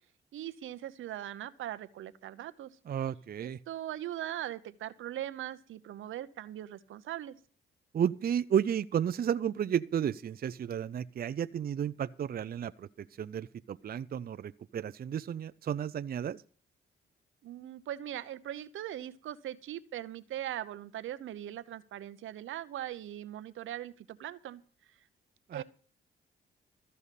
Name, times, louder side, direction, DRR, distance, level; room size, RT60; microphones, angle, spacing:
voice 1, 0.3-2.8 3.4-7.4 17.4-24.6 25.5-25.6, right 12 dB, 80° right, 13 dB, 0.8 m, -40 dB
voice 2, 2.9-3.6 7.9-12.9 13.2-16.4 25.5-25.6, right 9 dB, 50° right, 13 dB, 0.5 m, -32 dB
14.0 x 5.6 x 8.2 m, 0.43 s
cardioid pair, 65°, 20 cm